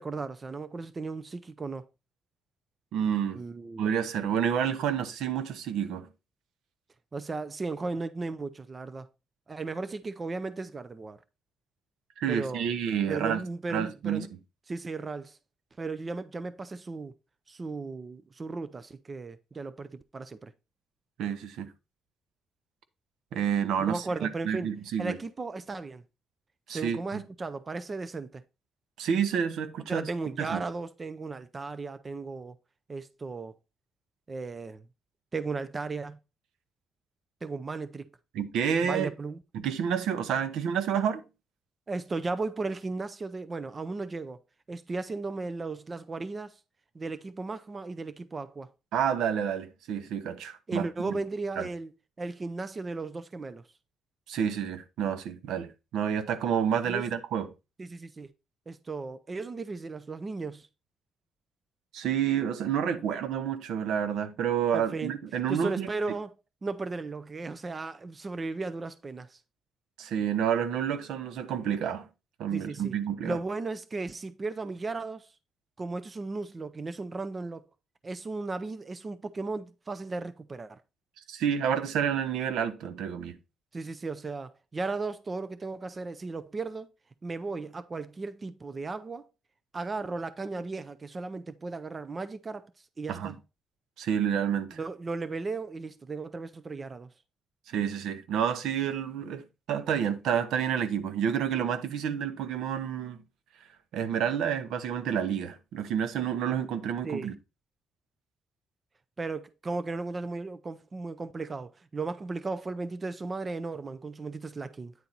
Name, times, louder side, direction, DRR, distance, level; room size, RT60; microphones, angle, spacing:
voice 1, 0.0-1.8 3.4-3.9 7.1-9.1 9.5-11.2 12.3-12.7 13.1-14.3 14.7-15.4 15.8-17.1 17.5-20.5 23.9-24.7 25.0-26.0 26.7-28.4 29.9-32.6 32.9-33.5 34.3-34.8 35.3-36.2 37.4-38.1 38.8-39.4 41.9-44.4 44.7-46.5 46.9-48.7 50.7-51.9 52.2-53.6 56.9-57.1 57.8-58.3 58.7-60.7 64.7-65.2 65.5-66.3 66.6-69.4 72.5-72.9 73.2-75.3 75.8-77.7 78.0-80.8 83.7-86.9 87.2-89.3 89.7-92.7 93.0-93.4 94.8-97.1 107.0-107.3 109.2-114.9, right 3 dB, 30° right, 0.5 m, -35 dB
voice 2, 2.9-3.4 3.8-6.1 12.2-13.4 13.7-14.3 21.2-21.7 23.3-25.2 26.7-27.2 29.0-30.1 30.4-30.6 38.3-39.1 39.5-41.2 48.9-51.1 51.6-51.7 54.3-57.5 61.9-65.9 70.0-72.0 72.4-73.4 81.3-83.4 93.1-93.3 94.0-94.8 97.7-99.4 99.7-103.2 103.9-107.3, right 8 dB, 85° right, 0.8 m, -29 dB
9.4 x 4.3 x 3.9 m
cardioid pair, 115°, 0 cm